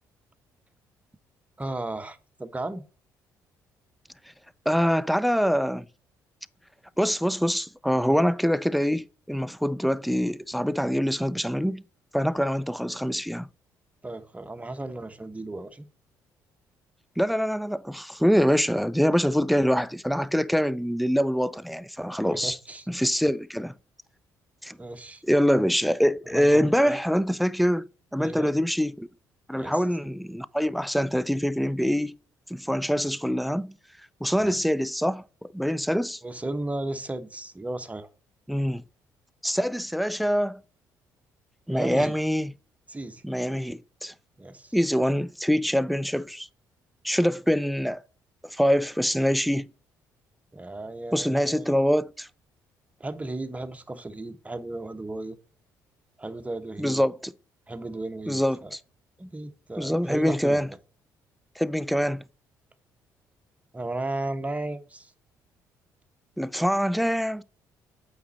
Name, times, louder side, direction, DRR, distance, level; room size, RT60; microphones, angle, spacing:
voice 1, 1.6-2.8 14.0-15.9 22.2-22.9 24.8-25.2 26.3-27.0 28.2-28.5 29.6-29.8 34.4-34.6 36.2-38.1 41.7-42.1 42.9-43.2 44.4-44.8 50.5-51.8 53.0-55.4 56.2-57.0 57.7-58.7 59.2-60.8 63.7-65.1, right 2 dB, 15° right, 0.9 m, -35 dB
voice 2, 4.7-5.9 7.0-11.8 12.1-13.5 17.2-22.6 22.9-23.7 24.6-24.8 25.2-29.1 29.5-32.2 32.5-33.8 34.2-35.2 35.5-36.2 38.5-38.8 39.4-40.6 41.7-42.5 43.2-44.1 44.7-46.5 47.0-48.0 48.4-49.7 51.1-52.3 56.8-57.3 58.3-58.8 59.8-60.7 61.6-62.2 66.4-67.4, equal, ahead, 0.4 m, -24 dB
8.3 x 4.1 x 4.2 m
hypercardioid pair, 50°, 9 cm